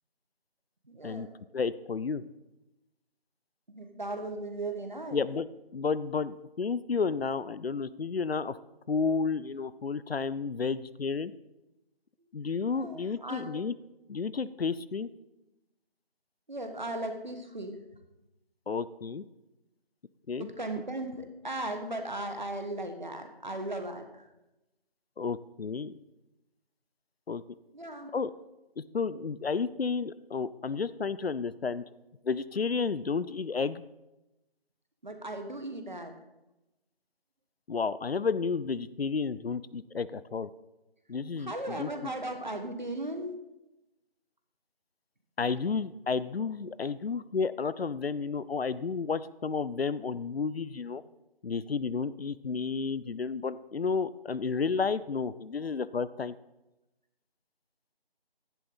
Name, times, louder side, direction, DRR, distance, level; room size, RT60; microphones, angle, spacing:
voice 1, 0.8-1.3 3.7-5.2 12.4-13.6 16.5-17.8 20.4-24.3 27.7-28.1 35.0-36.1 41.4-43.4, right 2 dB, 50° right, 6 dB, 1.3 m, -37 dB
voice 2, 1.5-2.2 5.1-5.5 5.7-8.6 8.9-11.3 12.3-13.7 14.1-15.1 18.7-19.2 20.3-20.5 25.2-25.9 27.3-27.4 28.1-28.3 28.8-31.8 32.2-33.8 37.7-40.5 41.1-42.1 45.4-51.0 51.4-56.3, left 5 dB, 75° left, 16 dB, 0.6 m, -31 dB
11.0 x 10.5 x 4.0 m, 0.97 s
figure-of-eight pair, 175°, 31 cm